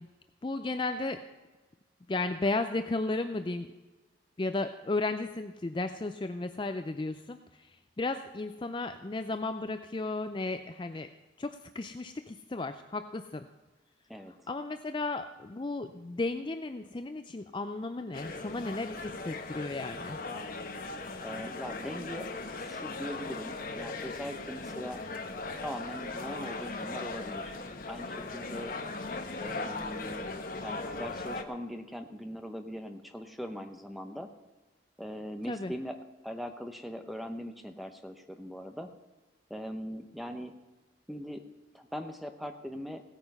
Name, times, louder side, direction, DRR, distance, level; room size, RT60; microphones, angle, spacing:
voice 1, 0.4-1.2 2.1-3.7 4.4-11.1 11.4-13.5 14.5-20.2 35.5-35.7, left 2 dB, 25° left, 9 dB, 0.4 m, -34 dB
sound 1, 18.1-31.4, left 3 dB, 50° left, 1.0 m, -38 dB
voice 2, 21.2-22.3 22.6-25.0 25.6-27.5 27.9-28.7 29.4-30.3 30.6-34.3 35.0-36.0 36.2-38.9 39.5-40.5 41.1-41.4 41.7-43.0, equal, ahead, 6 dB, 0.9 m, -40 dB
16.5 x 9.0 x 5.4 m, 1.2 s
head